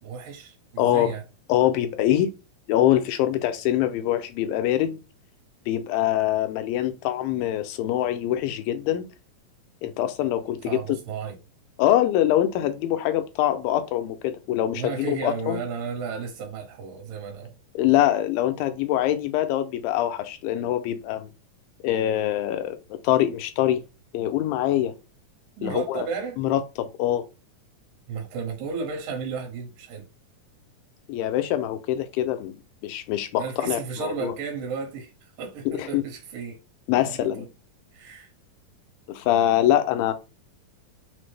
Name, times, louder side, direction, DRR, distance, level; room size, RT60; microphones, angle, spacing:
voice 1, 0.0-1.2 10.6-11.4 14.7-17.6 25.6-26.4 28.1-30.0 33.4-35.1 35.4-36.6 37.0-37.4 37.9-38.3, right 5 dB, 75° right, 2.7 m, -33 dB
voice 2, 0.8-1.1 1.5-2.3 2.7-5.0 5.7-9.0 9.8-11.0 11.8-15.6 17.8-21.3 21.8-22.8 23.0-23.8 24.1-24.9 25.6-26.1 26.4-27.3 31.1-32.6 32.8-34.3 35.8-36.0 36.9-37.5 39.1-40.1, left 12 dB, 90° left, 2.4 m, -24 dB
5.8 x 2.1 x 3.2 m
omnidirectional pair, 4.0 m